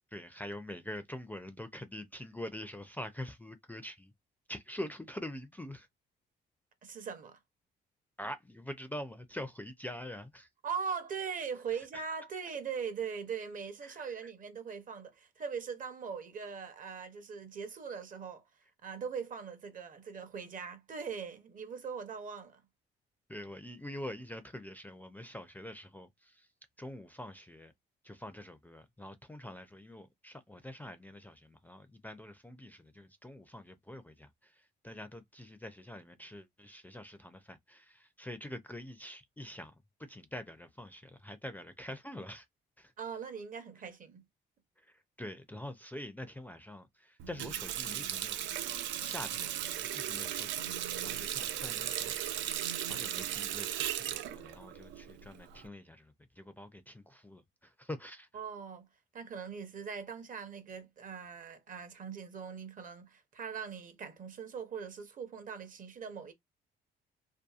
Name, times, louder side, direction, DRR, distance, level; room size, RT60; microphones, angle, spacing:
voice 1, 0.1-4.1 4.5-5.9 8.2-10.5 11.7-12.0 13.8-14.3 23.3-26.5 26.8-27.7 28.0-39.7 40.0-42.5 42.8-42.9 44.8-48.4 49.0-53.7 54.0-58.3, left 1 dB, 10° left, 0.4 m, -45 dB
voice 2, 6.8-7.4 10.6-18.4 18.8-22.6 43.0-44.2 58.3-58.9 59.1-66.3, right 6 dB, 45° right, 0.7 m, -41 dB
Water tap faucet, 47.2-55.7, right 11 dB, 85° right, 0.4 m, -37 dB
2.7 x 2.2 x 2.4 m
cardioid pair, 90°, 19 cm